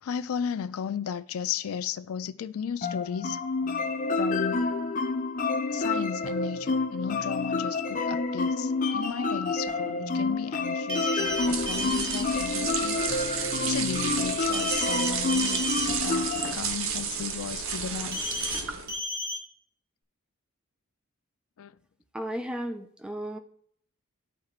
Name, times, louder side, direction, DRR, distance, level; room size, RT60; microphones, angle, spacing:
voice 1, 0.0-3.4 4.1-4.7 5.7-18.4 21.6-21.7, left 7 dB, 90° left, 0.4 m, -35 dB
sound 1, 2.8-16.5, left 3 dB, 40° left, 0.6 m, -29 dB
sound 2, 10.9-12.2 14.5-15.9 18.1-18.6 18.9-19.4, right 1 dB, 45° right, 1.9 m, -32 dB
sound 3, 11.2-19.0, right 6 dB, 75° right, 0.8 m, -32 dB
voice 2, 22.1-23.4, equal, 5° right, 0.5 m, -34 dB
13.0 x 4.3 x 2.4 m
head